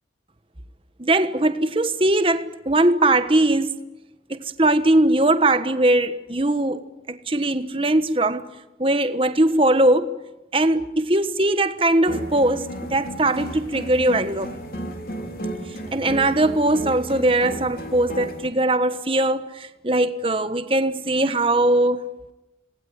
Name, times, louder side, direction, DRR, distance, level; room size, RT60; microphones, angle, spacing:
voice 1, 1.0-3.7 4.3-6.8 7.1-8.5 8.8-10.2 10.5-14.5 15.9-22.1, right 1 dB, 30° right, 1.3 m, -20 dB
sound 1, 12.1-18.5, equal, 50° left, 3.5 m, -33 dB
27.5 x 19.5 x 9.6 m
head